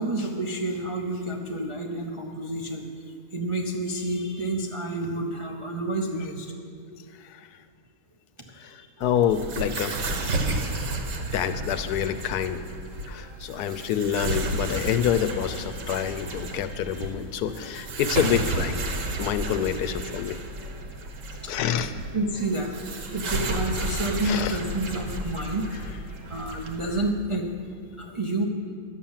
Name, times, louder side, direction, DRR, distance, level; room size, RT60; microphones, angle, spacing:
voice 1, 0.0-6.5 8.5-8.9 21.3-21.6 22.1-22.8 23.1-25.7 26.3-27.5 28.0-28.5, right 2 dB, 40° right, 0 dB, 0.4 m, -29 dB
voice 2, 6.9-7.5 8.6-10.4 11.3-12.6 13.1-18.8 19.2-20.4 21.5-21.9 24.2-24.6, left 9 dB, 80° left, 11 dB, 1.1 m, -27 dB
sound 1, 9.0-27.1, right 2 dB, 55° right, 1.4 m, -32 dB
11.0 x 7.4 x 7.2 m, 2.2 s
omnidirectional pair, 1.7 m